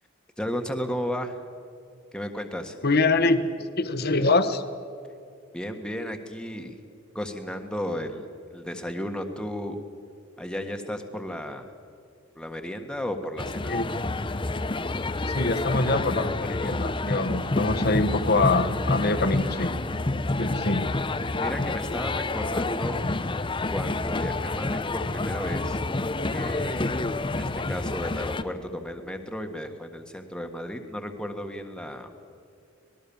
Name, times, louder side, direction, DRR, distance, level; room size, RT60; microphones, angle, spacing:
voice 1, 0.4-1.4 2.1-2.8 5.5-6.8 7.1-9.8 10.4-11.7 12.3-13.8 21.4-23.0 23.7-25.8 26.3-27.0 27.3-32.1, equal, 5° left, 4 dB, 1.6 m, -34 dB
voice 2, 2.8-3.5 3.8-4.6 13.7-13.8 15.3-19.8 20.4-20.9, left 3 dB, 50° left, 8 dB, 1.3 m, -24 dB
sound 1, 13.4-28.4, left 2 dB, 25° left, 0.7 m, -28 dB
26.0 x 19.5 x 7.1 m, 2.4 s
head